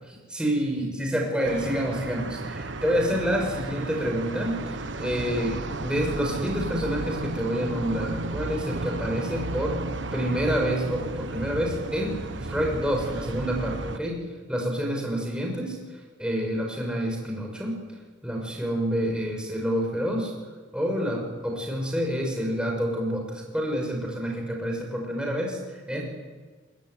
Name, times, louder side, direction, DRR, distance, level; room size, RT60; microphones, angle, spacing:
voice 1, 0.1-9.8 10.1-12.2 12.5-14.2 14.5-15.8 16.2-17.8 18.2-20.3 20.7-26.0, equal, 5° right, 0 dB, 6.2 m, -28 dB
sound 1, 1.4-14.0, right 2 dB, 70° right, 1.3 m, -33 dB
24.5 x 22.0 x 9.6 m, 1.4 s
head